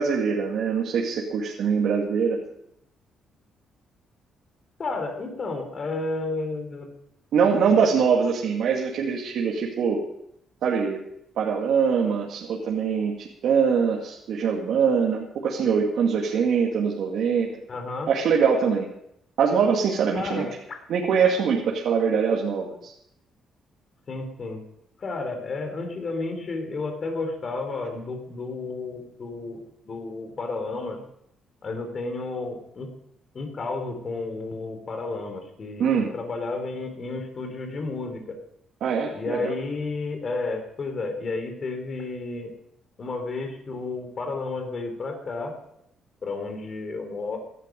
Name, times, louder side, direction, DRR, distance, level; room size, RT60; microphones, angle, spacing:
voice 1, 0.0-2.4 7.3-10.0 10.6-11.0 11.4-17.5 18.1-18.9 19.4-20.5 20.9-22.9 35.8-36.1 38.8-39.5, right 6 dB, 75° right, -2 dB, 2.3 m, -23 dB
voice 2, 4.8-6.9 17.7-18.1 20.1-20.8 24.1-24.6 25.0-31.0 31.6-32.9 33.3-38.4 39.1-42.5 43.0-45.5 46.2-47.4, left 3 dB, 45° left, 5 dB, 3.8 m, -32 dB
17.0 x 12.5 x 5.3 m, 0.76 s
cardioid pair, 90°, 0 cm